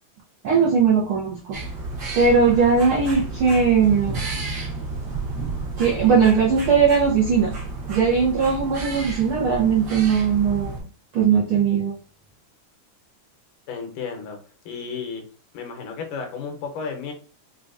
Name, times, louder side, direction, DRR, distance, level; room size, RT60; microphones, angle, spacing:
voice 1, 0.4-1.6 2.1-4.2 5.8-7.5 7.9-10.7 11.1-11.9, right 6 dB, 80° right, -5 dB, 1.1 m, -19 dB
sound 1, 1.5-10.8, right 3 dB, 60° right, 1.1 m, -31 dB
voice 2, 5.9-6.2 13.7-14.4 14.7-15.2 15.5-17.1, left 5 dB, 90° left, 3 dB, 2.4 m, -33 dB
5.5 x 2.3 x 2.5 m, 0.38 s
omnidirectional pair, 3.5 m